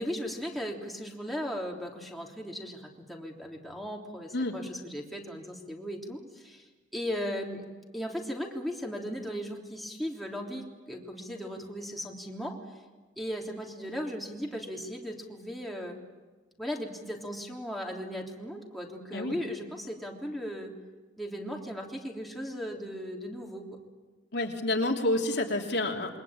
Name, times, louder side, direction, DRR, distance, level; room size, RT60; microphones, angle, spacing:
voice 1, 0.0-7.7 7.9-12.6 13.2-16.0 16.6-20.7 21.2-23.7, equal, ahead, -1 dB, 3.5 m, -37 dB
voice 2, 24.3-26.2, left 1 dB, 65° left, 2 dB, 3.2 m, -29 dB
28.0 x 24.0 x 8.9 m, 1.3 s
head